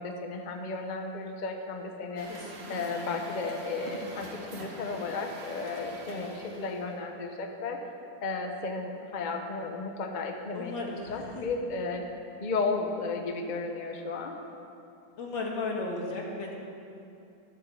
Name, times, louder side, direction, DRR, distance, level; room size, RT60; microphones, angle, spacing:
voice 1, 0.0-2.3 2.7-7.8 8.2-12.1 12.4-14.4, left 3 dB, 35° left, 3 dB, 0.8 m, -34 dB
Truck, 2.2-7.0, right 2 dB, 40° right, 1.3 m, -44 dB
voice 2, 2.3-3.1 6.1-6.3 10.5-11.5 15.2-16.6, left 3 dB, 75° left, -1 dB, 2.4 m, -36 dB
13.0 x 8.1 x 6.8 m, 2.7 s
omnidirectional pair, 2.1 m